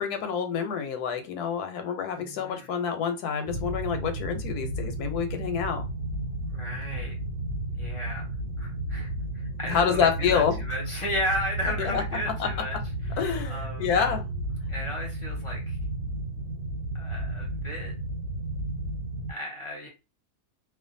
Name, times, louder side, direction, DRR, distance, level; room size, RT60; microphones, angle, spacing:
voice 1, 0.0-5.8 9.7-10.6 11.8-12.0 12.4-12.5 13.2-14.3, left 7 dB, 85° left, 7 dB, 1.1 m, -27 dB
voice 2, 2.1-2.7 6.5-7.2 7.7-12.8 13.1-13.9 14.7-15.8 17.0-17.9 19.3-19.9, equal, 30° left, -1 dB, 0.7 m, -34 dB
sound 1, 3.5-19.3, right 1 dB, 85° right, 1.1 m, -33 dB
2.4 x 2.4 x 2.5 m, 0.28 s
omnidirectional pair, 1.6 m